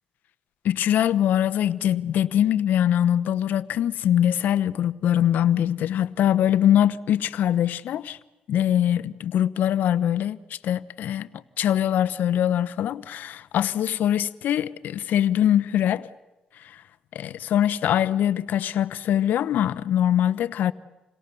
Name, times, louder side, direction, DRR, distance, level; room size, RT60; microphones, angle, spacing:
voice 1, 0.6-8.2 8.5-11.3 11.6-16.1 16.6-16.8 17.1-20.7, left 10 dB, 75° left, 0.9 m, -23 dB
29.5 x 26.0 x 6.9 m
cardioid pair, 75°, 3 cm